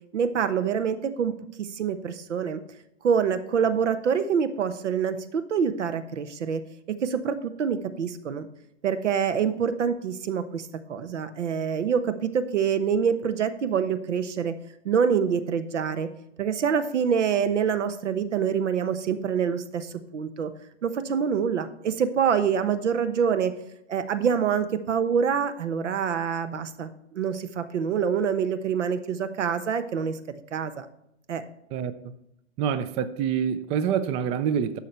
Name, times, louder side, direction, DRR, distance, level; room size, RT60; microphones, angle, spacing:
voice 1, 0.1-1.3 1.6-2.6 3.0-6.6 7.0-8.5 8.8-14.5 14.8-16.1 16.4-20.5 20.8-23.5 23.9-30.2 30.5-30.9 31.3-31.4, right 7 dB, 85° right, 1.1 m, -26 dB
voice 2, 31.7-32.1 32.6-34.8, right 8 dB, 15° right, 0.3 m, -26 dB
11.5 x 6.9 x 4.4 m
hypercardioid pair, 125°, 35 cm